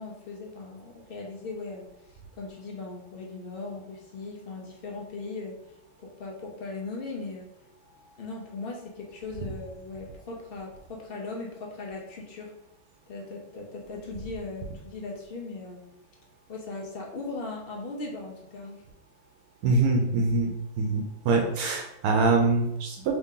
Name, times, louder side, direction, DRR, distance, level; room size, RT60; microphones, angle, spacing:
voice 1, 0.0-5.6 6.0-7.5 8.2-12.5 13.1-15.9 16.5-18.8, left 3 dB, 55° left, -1 dB, 0.6 m, -38 dB
voice 2, 19.6-20.5 20.8-23.1, right 3 dB, 85° right, 2 dB, 1.1 m, -24 dB
3.0 x 2.7 x 3.6 m, 0.80 s
omnidirectional pair, 1.5 m